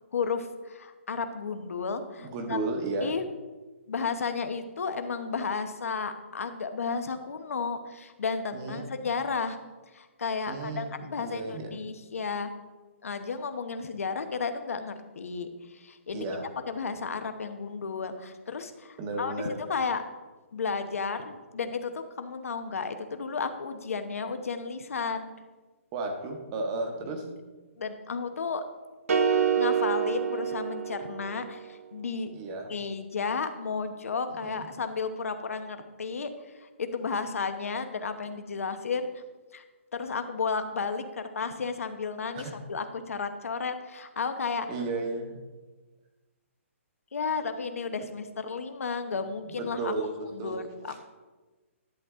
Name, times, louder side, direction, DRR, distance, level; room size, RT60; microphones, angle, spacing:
voice 1, 0.1-2.6 3.0-3.2 3.9-9.6 9.9-12.5 13.0-16.3 16.7-20.0 20.5-25.3 27.8-28.6 29.6-32.3 32.7-39.1 39.5-39.6 39.9-44.7 47.1-49.9 50.3-51.0, left 5 dB, 90° left, 8 dB, 1.0 m, -33 dB
voice 2, 2.2-3.1 8.5-8.8 10.5-11.7 16.1-16.4 19.0-19.5 25.9-27.2 32.3-32.7 34.4-34.7 42.4-42.5 44.7-45.4 49.5-50.1 50.4-50.6 50.9-51.0, right 3 dB, 15° right, 4 dB, 0.9 m, -33 dB
sound 1, 29.1-31.4, right 7 dB, 80° right, 1.0 m, -26 dB
11.0 x 7.8 x 3.7 m, 1.2 s
hypercardioid pair, 180°, 7 cm